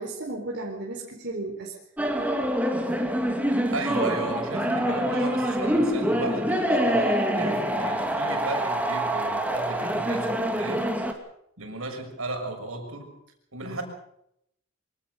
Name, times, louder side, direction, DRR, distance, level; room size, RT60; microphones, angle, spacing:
voice 1, 0.0-1.7 13.6-13.8, right 2 dB, 50° right, -1 dB, 4.3 m, -34 dB
sound 1, 2.0-11.1, equal, 5° right, 2.5 m, -25 dB
voice 2, 3.7-10.9 11.6-13.1 13.5-13.8, right 2 dB, 75° right, 3 dB, 6.5 m, -34 dB
24.5 x 18.5 x 6.7 m, 0.75 s
head